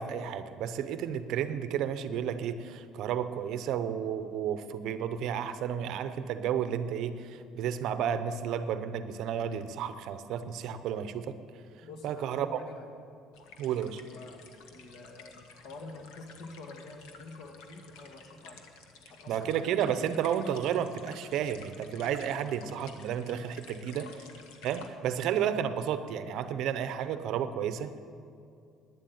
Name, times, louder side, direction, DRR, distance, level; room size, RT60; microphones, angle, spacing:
voice 1, 0.0-11.3 12.0-12.6 13.6-14.0 19.3-24.0 24.6-28.0, right 9 dB, 55° right, 11 dB, 0.7 m, -32 dB
voice 2, 11.8-13.0 14.0-18.7 19.1-19.7 23.8-24.2, left 3 dB, 50° left, 4 dB, 1.7 m, -48 dB
sound 1, 13.3-24.9, left 5 dB, 90° left, 1.4 m, -53 dB
11.5 x 9.7 x 9.3 m, 2.5 s
cardioid pair, 160°, 0 cm